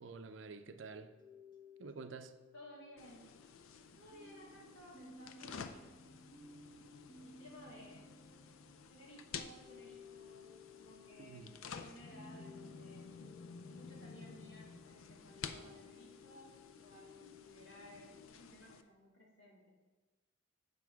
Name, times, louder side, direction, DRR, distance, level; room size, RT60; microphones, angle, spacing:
voice 1, 0.0-1.1 1.8-2.4 11.2-11.5, right 4 dB, 65° right, 0.5 m, -49 dB
sound 1, 0.8-3.7 4.1-18.3, left 3 dB, 25° left, 0.9 m, -59 dB
voice 2, 2.5-3.4 4.0-6.1 7.2-8.2 8.9-10.5 10.7-13.1 13.7-16.5 16.8-19.7, equal, 70° left, 2.4 m, -58 dB
sound 2, 3.0-18.8, left 6 dB, 90° left, 0.5 m, -52 dB
8.2 x 5.3 x 4.6 m
head